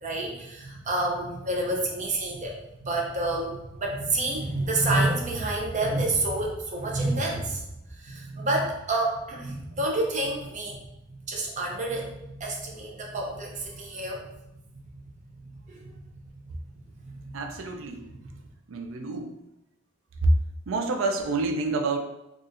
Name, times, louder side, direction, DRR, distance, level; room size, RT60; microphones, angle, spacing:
voice 1, 0.0-7.6 8.0-10.8 11.3-14.2 15.7-15.9 17.0-17.4, right 2 dB, 40° right, -1 dB, 0.6 m, -28 dB
voice 2, 17.3-18.1 18.7-19.4 20.2-20.3 20.7-22.0, right 2 dB, 90° right, 4 dB, 0.4 m, -27 dB
4.0 x 2.4 x 2.5 m, 0.89 s
head